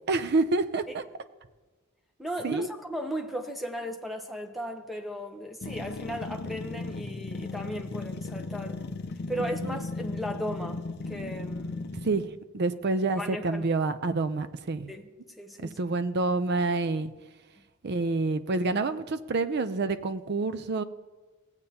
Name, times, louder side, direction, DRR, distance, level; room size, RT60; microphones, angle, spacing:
voice 1, 0.1-1.0 2.4-2.7 9.6-9.8 12.0-12.3 12.5-14.9 15.6-17.1 17.8-20.8, right 3 dB, 50° right, 0.5 m, -28 dB
voice 2, 2.2-8.8 9.3-12.0 13.2-13.6 14.9-15.1 15.4-15.8, equal, ahead, 0.8 m, -36 dB
sound 1, 5.6-12.4, left 3 dB, 50° left, 0.5 m, -36 dB
16.5 x 8.0 x 2.8 m
head